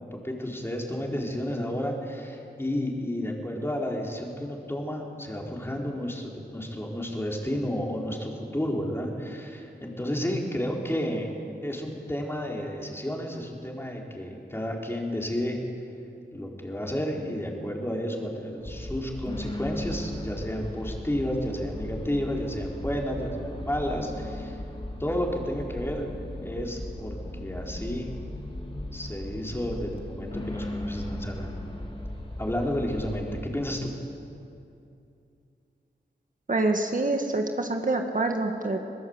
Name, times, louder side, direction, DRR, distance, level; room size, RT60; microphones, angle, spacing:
voice 1, 0.0-11.3 11.6-15.6 16.3-24.6 25.0-26.1 26.4-28.1 28.9-31.5 32.4-33.3 33.5-33.9, equal, 10° left, -1 dB, 4.1 m, -31 dB
sound 1, 18.6-33.4, left 1 dB, 30° left, 3.3 m, -37 dB
voice 2, 36.5-38.8, right 2 dB, 45° right, 3 dB, 1.8 m, -26 dB
22.0 x 21.0 x 8.1 m, 2.6 s
wide cardioid pair, 85°, 19 cm